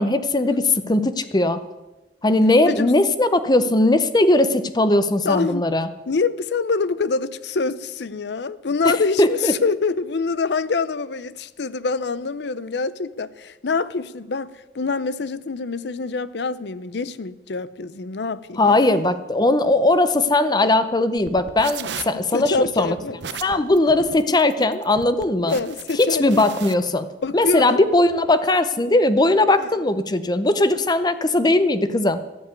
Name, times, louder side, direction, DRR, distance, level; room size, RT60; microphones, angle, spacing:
voice 1, 0.0-1.6 2.2-5.9 8.8-9.5 18.6-23.0 23.4-25.6 26.0-27.1 27.3-32.2, left 2 dB, 25° left, 0.6 m, -19 dB
voice 2, 5.2-5.7 6.1-18.8 21.8-21.9 22.3-23.2 23.5-23.6 25.5-26.3 27.2-27.8 29.6-29.7, left 4 dB, 70° left, 0.6 m, -25 dB
sound 1, 21.2-26.7, right 7 dB, 80° right, 0.8 m, -36 dB
12.5 x 7.4 x 9.5 m
head